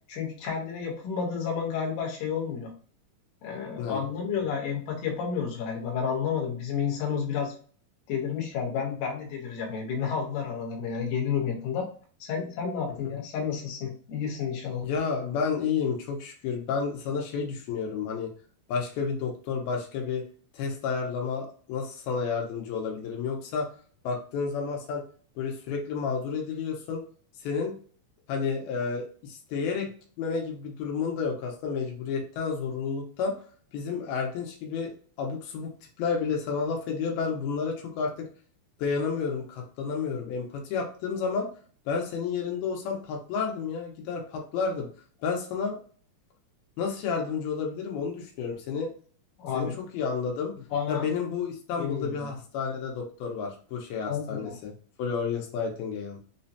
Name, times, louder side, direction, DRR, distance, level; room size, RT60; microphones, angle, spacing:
voice 1, 0.1-2.7 3.4-7.5 8.1-11.9 12.2-14.8 49.4-49.8 50.7-51.1 51.8-52.3 54.1-54.5, left 6 dB, 65° left, -1 dB, 2.3 m, -31 dB
voice 2, 14.8-18.3 18.7-20.2 20.5-23.7 24.0-25.0 25.4-27.0 27.4-27.8 28.3-29.9 30.2-33.4 33.7-34.9 35.2-35.7 36.0-38.3 38.8-41.5 41.9-44.9 45.2-45.8 46.8-48.9 49.5-49.7 49.9-50.5 50.9-54.7 55.0-56.2, left 5 dB, 90° left, 1 dB, 2.6 m, -31 dB
5.9 x 2.1 x 2.7 m, 0.43 s
omnidirectional pair, 4.2 m